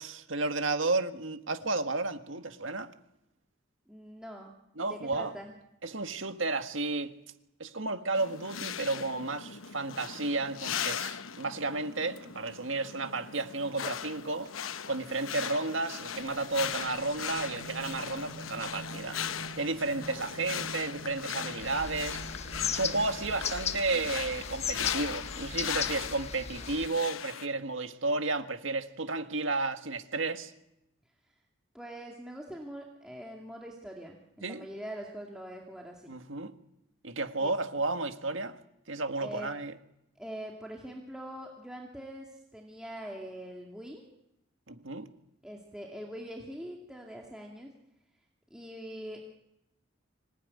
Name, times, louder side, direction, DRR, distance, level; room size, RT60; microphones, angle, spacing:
voice 1, 0.0-2.9 4.8-5.3 5.8-7.1 7.6-14.5 14.9-19.2 19.6-22.2 22.7-30.5 34.4-34.7 36.1-36.5 37.0-38.6 38.9-39.7 44.7-45.1, right 3 dB, 75° right, 1.7 m, -32 dB
voice 2, 3.9-4.5 4.8-5.5 31.7-36.2 37.4-37.5 39.2-39.5 40.2-44.0 45.4-47.7 48.5-49.2, right 1 dB, 5° right, 2.3 m, -43 dB
sound 1, 8.1-27.5, left 8 dB, 85° left, 1.0 m, -39 dB
sound 2, 16.1-23.7, right 2 dB, 60° left, 6.7 m, -48 dB
sound 3, 21.6-26.9, left 6 dB, 30° left, 1.3 m, -37 dB
26.0 x 18.5 x 9.7 m
head